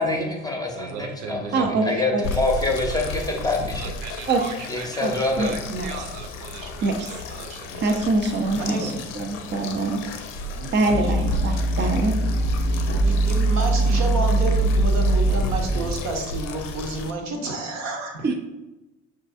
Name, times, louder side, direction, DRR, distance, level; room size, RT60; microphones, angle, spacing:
voice 1, 0.0-3.8 4.7-5.5, left 2 dB, 10° left, 0 dB, 0.8 m, -25 dB
voice 2, 0.7-2.1 3.8-8.1, right 5 dB, 70° right, 5 dB, 0.5 m, -38 dB
voice 3, 1.5-2.2 4.3-4.4 5.0-5.1 5.4-5.9 6.8-6.9 7.8-10.0 10.7-12.2 18.2-18.3, right 3 dB, 30° right, 4 dB, 0.6 m, -24 dB
sound 1, 2.2-17.1, left 2 dB, 60° left, 0.6 m, -33 dB
voice 4, 8.5-9.0 10.5-11.2 12.7-12.8 13.0-18.4, right 1 dB, 50° right, 3 dB, 0.9 m, -30 dB
sound 2, 10.9-15.9, right 2 dB, 90° right, 1.0 m, -22 dB
6.0 x 2.5 x 2.5 m, 1.0 s
figure-of-eight pair, 50°, 35 cm